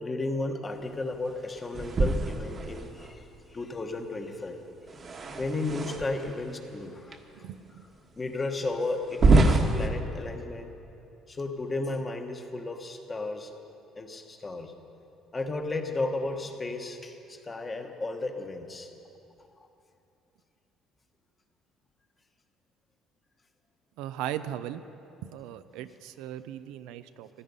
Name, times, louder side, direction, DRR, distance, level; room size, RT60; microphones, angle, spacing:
voice 1, 0.0-4.6 5.4-7.5 8.2-10.7 11.3-13.5 14.0-14.7 15.3-18.9 19.6-19.7, left 2 dB, 25° left, 5 dB, 1.3 m, -34 dB
sound 1, 1.7-3.1 4.9-6.4 7.1-7.2 7.9-8.0 9.1-9.9, right 2 dB, 40° right, 1.3 m, -25 dB
voice 2, 7.4-7.8 24.0-24.8 25.2-27.3, right 11 dB, 85° right, 12 dB, 0.5 m, -38 dB
15.5 x 13.0 x 5.5 m, 2.8 s
cardioid pair, 105°, 0 cm